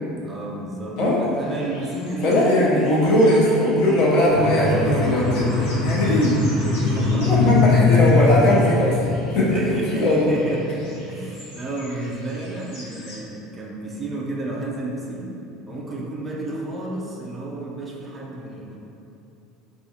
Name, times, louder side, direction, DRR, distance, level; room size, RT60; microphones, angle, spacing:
voice 1, 0.2-3.2 5.9-6.2 6.8-8.6 9.0-9.1 9.5-15.3 15.7-18.8, right 2 dB, 15° right, -3 dB, 0.4 m, -32 dB
sound 1, 1.3-13.2, left 1 dB, 85° left, 1.2 m, -44 dB
voice 2, 2.2-6.4 7.1-9.0 9.3-10.3, left 1 dB, 45° left, -6 dB, 0.7 m, -19 dB
sound 2, 4.3-9.6, left 3 dB, 15° left, 1.2 m, -21 dB
4.4 x 2.4 x 2.7 m, 2.8 s
cardioid pair, 175°, 0 cm